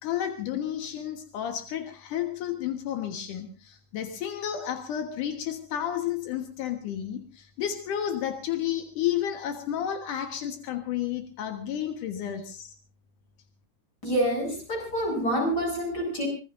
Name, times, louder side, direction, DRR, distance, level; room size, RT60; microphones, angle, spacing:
voice 1, 0.0-12.7, left 10 dB, 85° left, 5 dB, 3.0 m, -31 dB
voice 2, 14.0-16.3, right 1 dB, 30° left, 1 dB, 8.6 m, -27 dB
25.0 x 20.0 x 2.6 m, 0.32 s
omnidirectional pair, 3.5 m